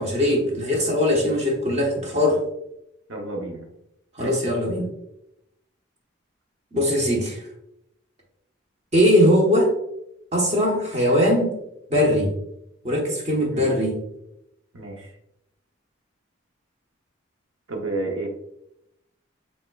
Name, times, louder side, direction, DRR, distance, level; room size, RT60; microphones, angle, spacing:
voice 1, 0.0-2.4 4.2-4.9 6.7-7.4 8.9-9.7 10.3-11.6 11.9-12.3 12.8-14.0, left 1 dB, 35° right, -1 dB, 1.0 m, -20 dB
voice 2, 3.1-3.6 4.2-4.3 13.5-13.8 14.7-15.1 17.7-18.3, right 2 dB, 85° right, 1 dB, 0.8 m, -30 dB
5.3 x 3.5 x 2.3 m, 0.80 s
head